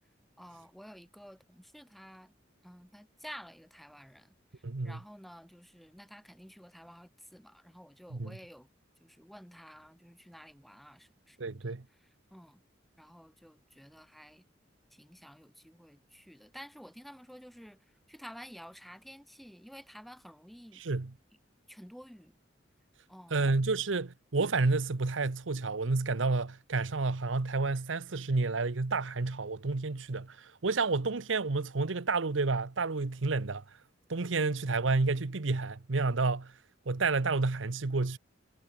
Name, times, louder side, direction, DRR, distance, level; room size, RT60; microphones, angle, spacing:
voice 1, 0.4-2.3 2.6-8.7 9.0-12.6 13.0-14.4 14.9-20.8 21.7-22.4 23.1-23.5, equal, ahead, 4.0 m, -51 dB
voice 2, 4.6-5.0 8.1-8.4 11.4-11.8 20.8-21.1 23.3-33.6 34.1-36.5 36.9-38.2, right 3 dB, 85° right, 1.0 m, -30 dB
head